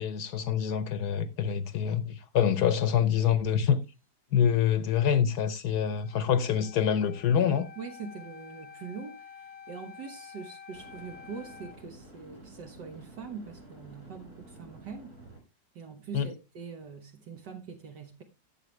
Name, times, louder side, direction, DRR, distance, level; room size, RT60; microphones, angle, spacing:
voice 1, 0.0-3.8 4.3-7.7 16.1-16.3, left 8 dB, 65° left, 1.3 m, -26 dB
Wind instrument woodwind instrument, 5.9-11.8, left 7 dB, 40° left, 0.5 m, -49 dB
sound 1, 5.9-6.0 10.7-15.4, right 1 dB, 50° right, 5.7 m, -51 dB
voice 2, 7.8-15.1 15.8-18.2, right 5 dB, 70° right, 1.8 m, -43 dB
14.0 x 7.3 x 3.2 m
omnidirectional pair, 1.9 m